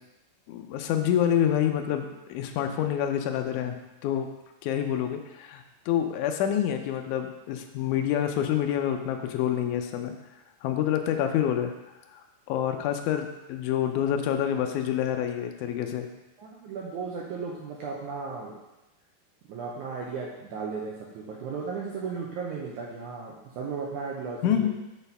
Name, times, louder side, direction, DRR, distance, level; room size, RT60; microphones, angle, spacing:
voice 1, 0.5-3.8 4.0-4.3 4.6-10.1 10.6-11.7 12.1-12.2 12.5-16.1 24.4-24.7, left 10 dB, 90° left, 5 dB, 1.7 m, -27 dB
voice 2, 16.4-18.6 19.5-24.7, right 5 dB, 75° right, -3 dB, 1.8 m, -35 dB
6.1 x 4.1 x 5.4 m, 0.99 s
omnidirectional pair, 4.1 m